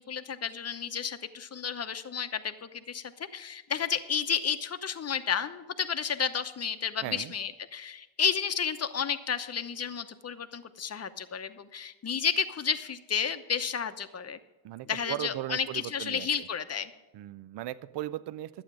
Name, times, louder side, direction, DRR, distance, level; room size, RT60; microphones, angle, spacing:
voice 1, 0.0-14.4 14.8-16.9, left 7 dB, 30° left, 10 dB, 0.9 m, -32 dB
voice 2, 7.0-7.3 14.6-16.3 17.1-18.6, right 13 dB, 60° right, 15 dB, 0.6 m, -37 dB
11.5 x 8.7 x 6.2 m, 1.1 s
cardioid pair, 85°, 49 cm